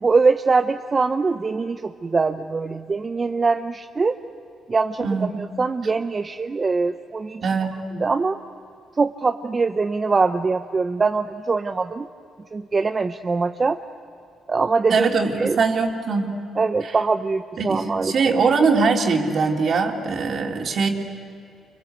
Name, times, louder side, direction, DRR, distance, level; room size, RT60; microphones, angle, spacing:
voice 1, 0.0-4.2 4.7-7.5 8.0-8.4 9.0-12.1 12.5-13.8 14.5-15.1 15.4-15.6 16.6-18.3, right 4 dB, 30° right, 7 dB, 0.8 m, -22 dB
voice 2, 7.4-7.8 14.9-16.3 16.8-16.9 17.6-20.9, right 4 dB, 55° right, 1 dB, 3.2 m, -21 dB
29.5 x 24.5 x 8.1 m, 2.6 s
cardioid pair, 90°, 0 cm